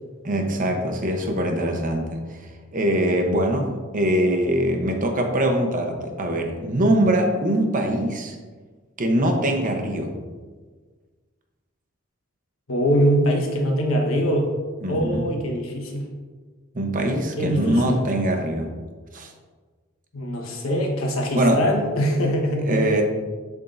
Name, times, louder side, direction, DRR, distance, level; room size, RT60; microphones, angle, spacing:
voice 1, 0.2-2.4 2.7-8.4 9.0-10.1 14.8-15.3 16.7-18.7 19.1-19.3 21.3-21.6 22.6-23.0, right 1 dB, 40° right, 3 dB, 0.8 m, -22 dB
voice 2, 12.7-14.5 14.9-16.0 17.4-18.0 20.1-22.6, equal, 90° left, 0 dB, 1.2 m, -23 dB
10.5 x 3.6 x 2.5 m, 1.4 s
head